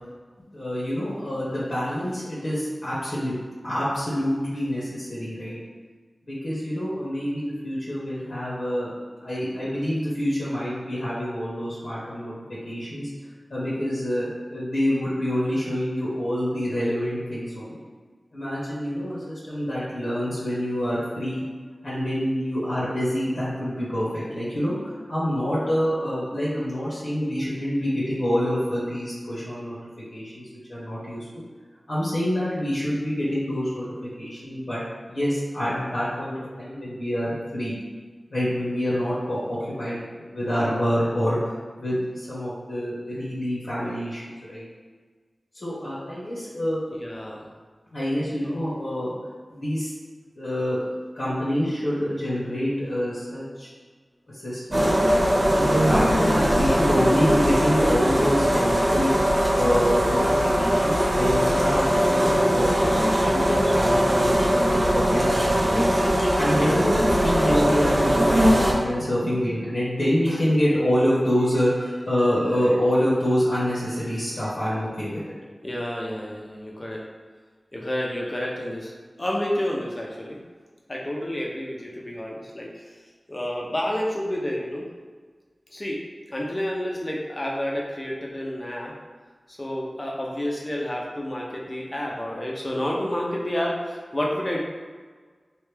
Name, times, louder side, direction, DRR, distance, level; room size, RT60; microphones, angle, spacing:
voice 1, 0.5-3.3 3.6-5.6 6.3-8.9 9.2-12.3 12.6-13.1 13.5-17.8 18.3-21.4 21.8-31.4 31.9-34.8 35.1-37.7 38.3-41.5 41.8-44.2 44.5-44.6 45.5-46.8 47.9-49.1 49.5-49.9 50.3-53.7 54.3-54.9 55.3-65.9 66.4-75.3, equal, 80° left, -9 dB, 1.2 m, -26 dB
voice 2, 46.9-47.5 66.6-66.8 75.6-77.0 77.7-78.9 79.2-80.4 80.9-82.7 83.3-84.9 85.7-86.0 86.3-88.9 89.5-94.6, left 1 dB, 35° left, -2 dB, 0.7 m, -29 dB
sound 1, 54.7-68.7, equal, 45° right, 0.9 m, -21 dB
3.3 x 2.5 x 3.3 m, 1.5 s
wide cardioid pair, 60°, 0 cm